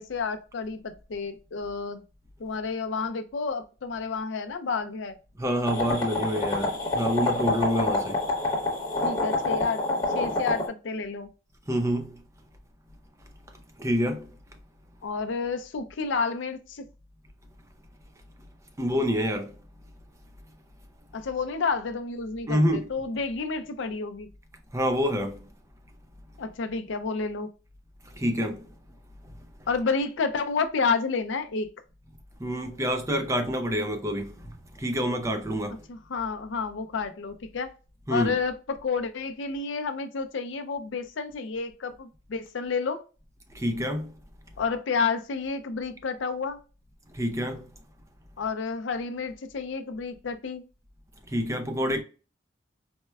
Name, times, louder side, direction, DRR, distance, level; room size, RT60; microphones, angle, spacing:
voice 1, 0.0-2.0 2.4-5.2 9.0-9.8 10.1-11.3 15.0-16.8 21.1-24.3 26.4-27.5 29.7-31.7 35.9-37.7 38.1-43.0 44.6-46.6 48.4-50.6, left 4 dB, 70° left, 0.5 m, -30 dB
voice 2, 5.4-8.3 11.7-12.2 13.8-14.3 18.8-19.5 22.5-22.9 24.7-25.5 28.1-28.7 32.4-35.8 38.1-38.4 43.5-44.1 47.1-47.7 51.3-52.0, equal, 15° right, 0.4 m, -27 dB
sound 1, 5.7-10.7, left 2 dB, 20° left, 0.9 m, -27 dB
4.3 x 2.1 x 2.3 m
head